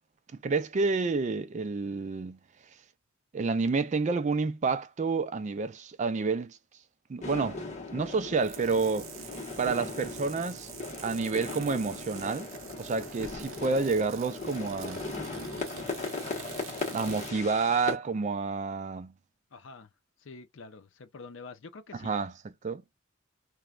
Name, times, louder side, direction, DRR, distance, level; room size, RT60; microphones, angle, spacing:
voice 1, 0.4-2.4 3.3-6.6 7.1-7.6 7.9-9.1 9.6-10.7 11.0-12.5 12.8-15.0 16.9-19.1 22.0-22.3 22.6-22.8, right 4 dB, 35° right, 0.3 m, -29 dB
sound 1, 7.2-18.0, left 3 dB, 35° left, 1.0 m, -38 dB
sound 2, 8.4-17.3, right 8 dB, 85° right, 0.6 m, -46 dB
voice 2, 19.5-19.9 20.2-22.1, left 4 dB, 65° left, 0.6 m, -47 dB
3.0 x 2.2 x 2.3 m
head